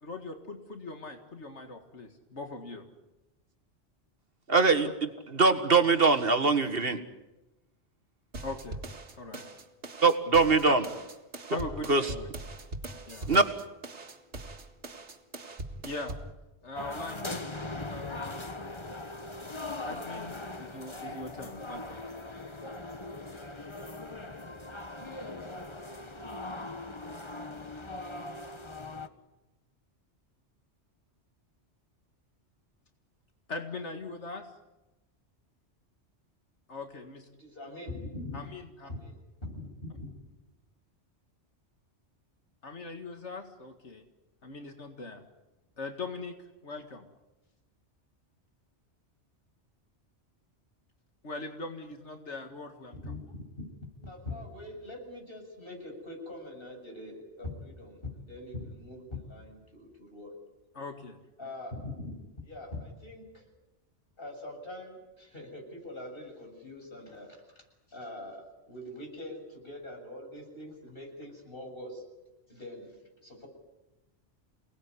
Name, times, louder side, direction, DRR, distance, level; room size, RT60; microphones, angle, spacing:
voice 1, 0.0-2.8 8.4-8.8 9.2-9.6 10.7-10.8 11.5-12.3 13.1-13.3 15.8-16.1 16.6-17.5 17.9-18.5 19.8-22.0 33.5-34.5 36.7-37.3 38.3-38.9 42.6-44.0 44.4-45.2 45.8-46.3 46.6-47.1 51.2-53.2 60.7-61.2, left 3 dB, 75° left, 5 dB, 2.2 m, -40 dB
voice 2, 4.5-4.9 5.3-7.0 10.0-10.8 11.9-12.0 13.3-13.4, right 4 dB, 55° right, 9 dB, 1.8 m, -22 dB
sound 1, 8.3-16.3, right 2 dB, 75° right, 2.3 m, -42 dB
sound 2, 16.8-29.1, left 2 dB, 25° left, 1.4 m, -40 dB
voice 3, 37.4-38.4 38.8-39.5 53.0-53.4 54.0-60.3 61.4-61.9 62.4-63.4 64.2-67.4 67.9-72.0 72.5-73.5, left 2 dB, 55° left, 2 dB, 7.5 m, -43 dB
29.0 x 19.0 x 9.8 m, 1.0 s
omnidirectional pair, 1.2 m